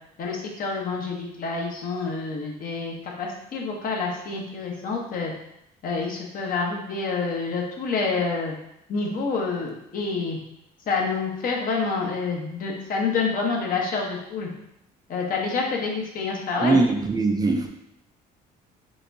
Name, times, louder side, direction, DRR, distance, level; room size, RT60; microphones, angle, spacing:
voice 1, 0.2-5.3 5.8-8.5 8.9-10.4 10.9-14.5 15.1-16.8, left 4 dB, 55° left, -1 dB, 1.1 m, -28 dB
voice 2, 16.6-17.7, right 3 dB, 25° right, 3 dB, 0.5 m, -21 dB
5.2 x 3.5 x 2.7 m, 0.80 s
cardioid pair, 110°, 17 cm